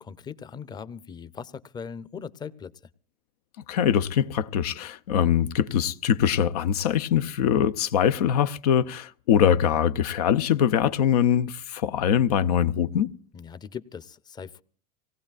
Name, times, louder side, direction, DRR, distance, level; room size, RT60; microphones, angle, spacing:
voice 1, 0.0-2.7 13.3-14.6, left 6 dB, 20° left, 0.6 m, -39 dB
voice 2, 3.7-13.1, left 9 dB, 90° left, 0.6 m, -23 dB
25.5 x 18.5 x 2.4 m
supercardioid pair, 120°, 19 cm